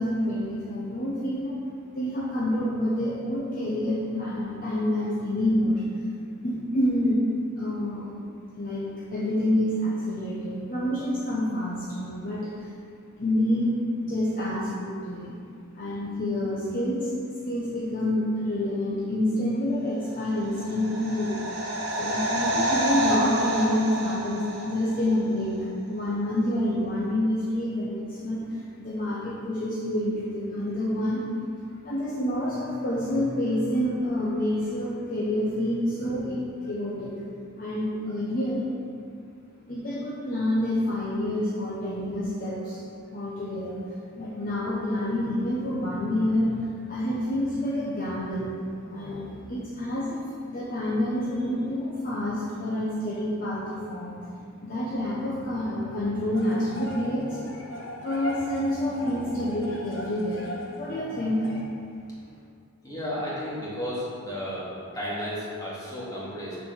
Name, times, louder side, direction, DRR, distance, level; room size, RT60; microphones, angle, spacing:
voice 1, 0.0-1.6 1.9-5.8 6.4-7.2 7.6-8.1 8.6-12.7 13.2-13.7 14.0-15.4 15.7-17.1 17.4-21.3 21.9-31.3 31.8-37.2 37.6-38.6 39.7-42.8 43.1-43.8 44.2-48.5 48.9-50.2 50.5-54.2 54.6-57.4 58.0-61.5, left 1 dB, 40° left, -8 dB, 1.1 m, -28 dB
sound 1, 20.3-25.1 25.4-25.5, right 1 dB, 55° right, 1.5 m, -28 dB
sound 2, 56.3-61.6, left 1 dB, 60° left, 1.1 m, -38 dB
voice 2, 62.8-66.6, equal, 15° left, -8 dB, 2.2 m, -33 dB
6.9 x 5.1 x 6.5 m, 2.4 s
head